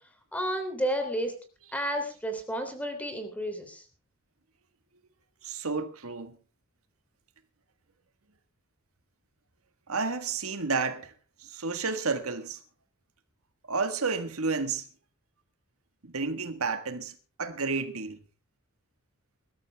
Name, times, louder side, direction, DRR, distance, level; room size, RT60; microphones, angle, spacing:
voice 1, 0.3-1.3 1.7-3.8, equal, 5° left, 3.3 m, -31 dB
voice 2, 5.4-6.4 9.9-11.1 11.4-12.6 13.7-14.9 16.0-18.2, right 4 dB, 80° right, 1.7 m, -31 dB
21.5 x 13.0 x 3.5 m
head